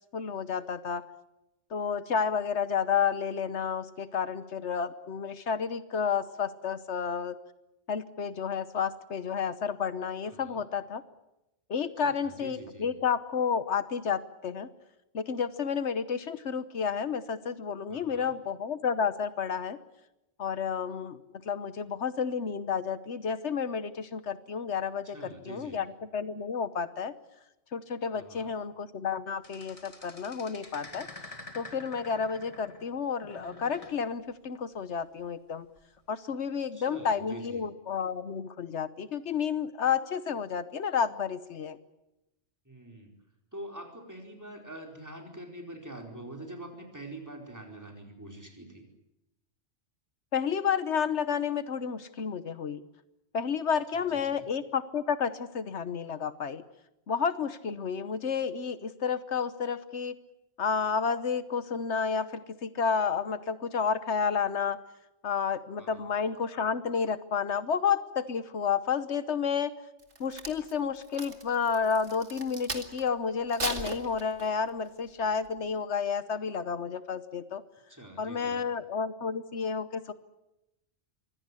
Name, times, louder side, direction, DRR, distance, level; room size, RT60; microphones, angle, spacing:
voice 1, 0.1-1.0 1.7-7.4 7.9-11.0 11.7-14.7 15.1-19.8 20.4-25.9 26.1-27.1 27.7-31.1 31.5-35.7 36.1-41.8 50.3-52.8 53.3-56.6 57.1-60.2 60.6-64.8 65.2-69.7 70.2-77.6 78.2-80.1, left 6 dB, 75° left, 13 dB, 1.3 m, -31 dB
voice 2, 10.3-10.6 12.0-12.9 17.9-18.3 25.0-25.8 28.1-28.5 36.7-37.6 42.6-43.2 43.5-48.9 53.9-54.5 65.8-66.1 77.9-78.6, right 1 dB, 15° right, 2 dB, 4.6 m, -45 dB
sound 1, 29.4-32.9 33.2-34.0 35.8-36.0, left 2 dB, 30° left, 2.1 m, -47 dB
Crack, 70.0-73.1 73.5-74.7 75.2-75.5, right 3 dB, 85° right, 2.5 m, -38 dB
24.0 x 17.0 x 9.8 m, 0.91 s
omnidirectional pair, 1.2 m